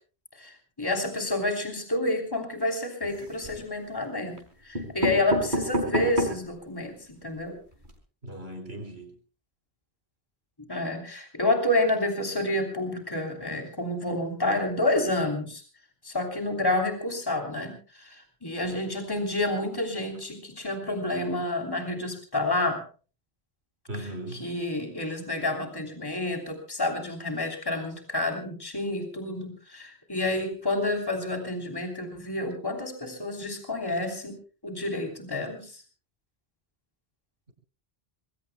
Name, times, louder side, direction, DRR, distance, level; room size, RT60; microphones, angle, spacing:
voice 1, 0.3-7.6 10.7-15.6 16.0-22.8 23.9-34.4 34.6-35.8, left 2 dB, 20° left, 3 dB, 3.2 m, -29 dB
sound 1, 3.0-3.6 4.4-4.5 4.7-6.5 7.0-7.1 7.3-7.4 7.7-7.9, equal, 50° right, 4.9 m, -29 dB
voice 2, 8.2-9.1 23.9-24.4, right 1 dB, 80° right, 6 dB, 4.8 m, -37 dB
26.5 x 21.5 x 2.2 m, 0.37 s
omnidirectional pair, 1.0 m